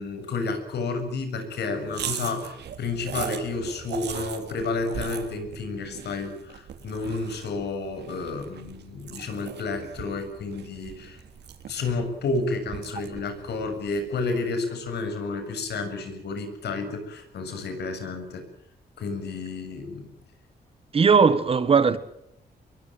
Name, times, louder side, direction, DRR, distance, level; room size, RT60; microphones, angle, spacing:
voice 1, 0.0-11.2 11.7-18.5 19.0-20.1, left 3 dB, 85° left, 7.3 m, -31 dB
sound 1, 1.9-14.4, right 9 dB, 85° right, 3.3 m, -39 dB
voice 2, 20.9-22.0, right 5 dB, 35° right, 1.6 m, -18 dB
26.0 x 22.5 x 7.7 m
wide cardioid pair, 175°, 17 cm